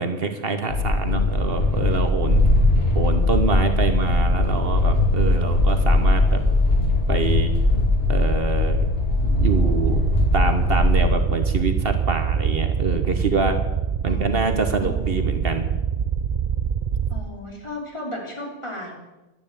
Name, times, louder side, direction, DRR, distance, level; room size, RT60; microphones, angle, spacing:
voice 1, 0.0-2.4 2.9-6.4 7.1-7.5 8.1-8.8 9.2-10.0 10.3-13.6 14.0-15.6, right 4 dB, 65° right, 7 dB, 1.5 m, -25 dB
sound 1, 0.7-11.1, left 2 dB, 65° left, 3.4 m, -20 dB
sound 2, 9.4-17.2, right 7 dB, 45° right, 0.6 m, -24 dB
voice 2, 14.1-15.1 17.1-18.9, left 1 dB, 30° left, -1 dB, 3.5 m, -35 dB
12.0 x 9.7 x 8.9 m, 1.1 s
omnidirectional pair, 1.1 m